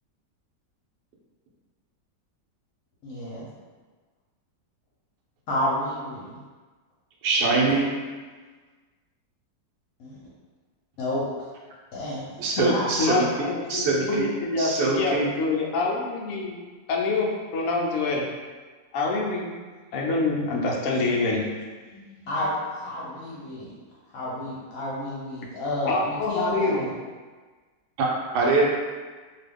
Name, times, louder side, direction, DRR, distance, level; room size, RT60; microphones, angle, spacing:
voice 1, 3.0-3.4 5.5-6.4 10.0-10.2 11.0-11.3 11.9-13.0 22.3-23.7 24.1-26.9, left 1 dB, 60° left, -7 dB, 1.0 m, -30 dB
voice 2, 7.2-7.9 12.4-14.3 14.6-15.3 28.0-28.1 28.3-28.6, right 3 dB, 75° right, -3 dB, 1.3 m, -23 dB
voice 3, 12.6-18.2 18.9-19.5 19.9-21.5 21.9-22.3 25.8-26.9, left 3 dB, 85° left, -1 dB, 0.7 m, -26 dB
2.8 x 2.3 x 3.4 m, 1.4 s
omnidirectional pair, 1.9 m